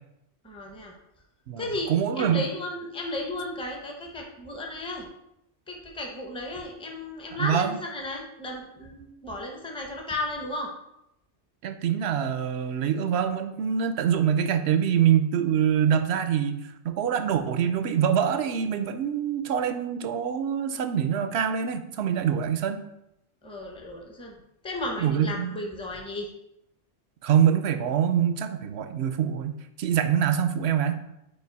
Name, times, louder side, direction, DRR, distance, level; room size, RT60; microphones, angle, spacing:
voice 1, 0.4-0.9 1.6-5.1 5.7-10.7 23.4-24.3 24.6-26.3, left 2 dB, 5° left, 1 dB, 0.8 m, -34 dB
voice 2, 1.5-2.4 7.3-7.8 11.6-22.8 25.0-25.5 27.2-31.0, right 8 dB, 70° right, 9 dB, 0.8 m, -25 dB
5.5 x 4.5 x 4.6 m, 0.82 s
omnidirectional pair, 1.2 m